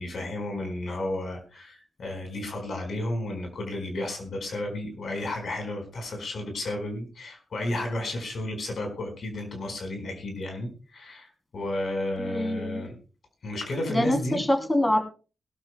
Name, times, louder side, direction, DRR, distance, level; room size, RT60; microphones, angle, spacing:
voice 1, 0.0-12.9 13.4-14.4, left 1 dB, 65° left, 4 dB, 4.6 m, -32 dB
voice 2, 12.2-12.9 13.9-15.0, left 1 dB, 20° left, 4 dB, 3.0 m, -25 dB
22.0 x 12.5 x 2.2 m, 0.34 s
supercardioid pair, 45°, 0 cm